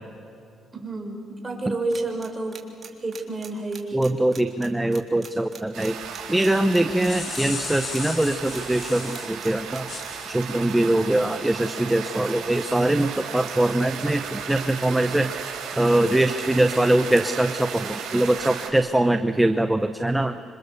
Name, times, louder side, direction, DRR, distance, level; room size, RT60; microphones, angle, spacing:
voice 1, 0.7-2.6 3.0-4.0 6.8-7.1 10.9-11.2, right 2 dB, 25° right, 3 dB, 5.2 m, -31 dB
sound 1, 1.9-8.9 9.1-10.1, right 5 dB, 40° right, 3.4 m, -41 dB
voice 2, 3.9-6.0 6.3-9.9 10.3-15.3 15.8-20.4, right 1 dB, 10° right, 8 dB, 1.0 m, -22 dB
sound 2, 5.7-18.7, right 7 dB, 85° right, 5.4 m, -35 dB
sound 3, 7.0-9.3 9.9-10.5, left 6 dB, 45° left, 1.2 m, -35 dB
26.5 x 26.5 x 7.0 m, 2.5 s
cardioid pair, 90°, 0 cm